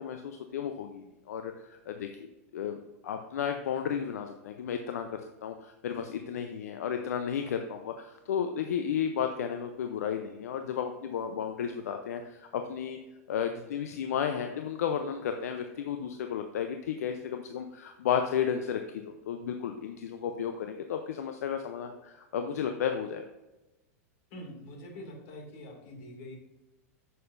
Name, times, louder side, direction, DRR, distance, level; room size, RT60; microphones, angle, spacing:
voice 1, 0.0-2.3 2.5-13.0 13.3-23.3, left 8 dB, 80° left, 6 dB, 0.6 m, -33 dB
voice 2, 24.3-26.4, left 1 dB, 60° left, 0 dB, 2.4 m, -45 dB
8.6 x 6.5 x 2.6 m, 1.0 s
hypercardioid pair, 110°, 8 cm